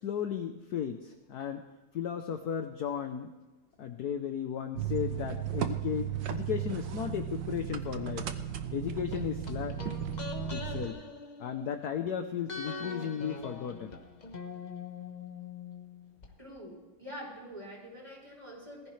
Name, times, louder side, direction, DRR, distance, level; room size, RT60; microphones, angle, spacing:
voice 1, 0.0-1.6 1.9-3.3 3.8-8.3 8.7-10.0 10.5-11.0 11.4-14.0, left 8 dB, 60° left, 6 dB, 1.1 m, -35 dB
sound 1, 4.8-10.9, right 9 dB, 65° right, 1.4 m, -35 dB
sound 2, 9.1-12.1 12.5-16.3 16.6-16.7, left 4 dB, 30° left, 0.8 m, -43 dB
voice 2, 16.4-18.9, equal, 15° right, -5 dB, 6.0 m, -45 dB
20.5 x 15.0 x 3.3 m, 1.2 s
omnidirectional pair, 2.3 m